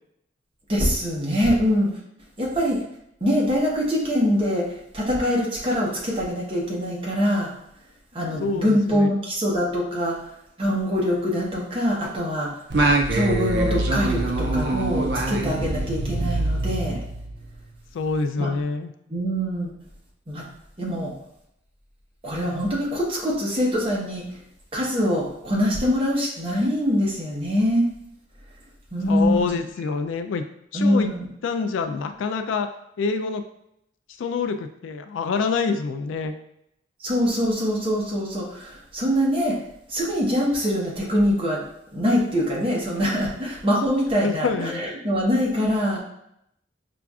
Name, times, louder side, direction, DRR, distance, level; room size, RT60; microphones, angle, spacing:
voice 1, 0.7-1.9 2.4-2.8 3.2-7.5 8.1-10.1 10.6-12.5 13.1-17.0 18.4-18.5 19.1-19.7 20.3-20.5 20.8-21.1 22.2-24.2 24.7-27.9 28.9-29.6 30.7-31.3 37.0-39.6 39.9-41.7 41.9-46.0, equal, 25° right, -4 dB, 0.9 m, -23 dB
voice 2, 8.4-9.1 17.9-18.9 29.1-30.4 30.7-31.1 31.4-32.7 33.0-33.4 34.2-36.3 44.2-44.8, left 4 dB, 75° left, 8 dB, 0.3 m, -26 dB
Singing, 12.7-17.5, right 2 dB, 55° right, 0.4 m, -24 dB
5.8 x 2.5 x 2.3 m, 0.77 s
head